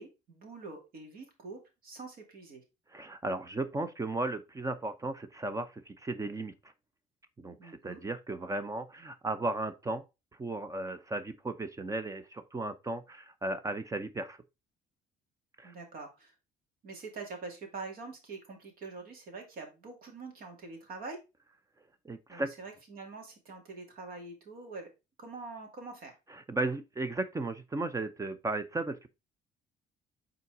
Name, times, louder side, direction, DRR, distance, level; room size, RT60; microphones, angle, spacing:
voice 1, 0.0-2.6 7.6-8.0 15.6-16.3 16.8-21.2 22.3-24.9 25.2-26.1, right 3 dB, 60° right, 2.6 m, -45 dB
voice 2, 2.9-6.5 7.4-10.0 10.4-14.4 15.6-15.7 22.0-22.5 26.3-29.1, right 2 dB, 20° right, 0.6 m, -35 dB
5.6 x 4.0 x 4.6 m
cardioid pair, 110°, 17 cm